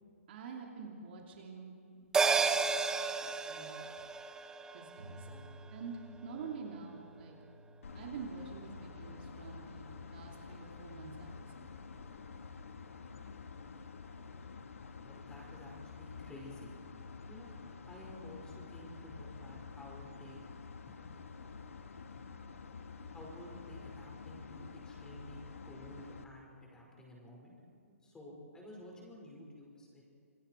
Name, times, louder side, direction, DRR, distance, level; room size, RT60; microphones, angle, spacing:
voice 1, 0.3-3.9 4.7-5.3 5.7-7.4 7.9-11.7, right 5 dB, 45° right, 0 dB, 3.0 m, -47 dB
sound 1, 2.1-6.9 7.2-7.3, right 5 dB, 10° right, 0.7 m, -34 dB
sound 2, 5.0-11.9, right 1 dB, 75° right, 4.3 m, -56 dB
voice 2, 5.3-5.8 15.0-16.7 17.3-17.5 17.9-20.4 20.9-21.1 23.1-27.5 27.9-30.0, left 1 dB, 10° left, -2 dB, 5.4 m, -52 dB
sound 3, 7.8-26.2, left 5 dB, 70° left, 1.5 m, -49 dB
27.0 x 20.5 x 4.7 m, 2.5 s
figure-of-eight pair, 135°, 8 cm